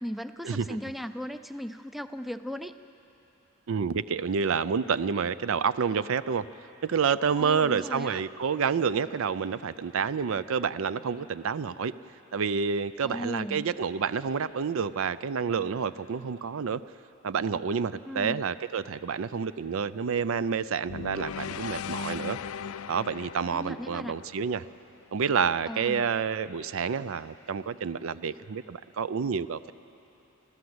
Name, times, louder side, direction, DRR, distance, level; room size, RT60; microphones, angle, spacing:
voice 1, 0.0-2.8 7.4-8.2 13.0-13.7 18.1-18.4 23.5-24.2 25.7-26.1, equal, ahead, 10 dB, 0.4 m, -37 dB
voice 2, 3.7-6.5 6.8-11.9 12.3-16.8 17.2-22.4 22.9-24.6 25.1-29.7, right 6 dB, 70° right, 15 dB, 0.5 m, -29 dB
sound 1, 20.9-25.1, left 7 dB, 80° left, 0.4 m, -38 dB
26.5 x 15.0 x 7.9 m, 2.9 s
head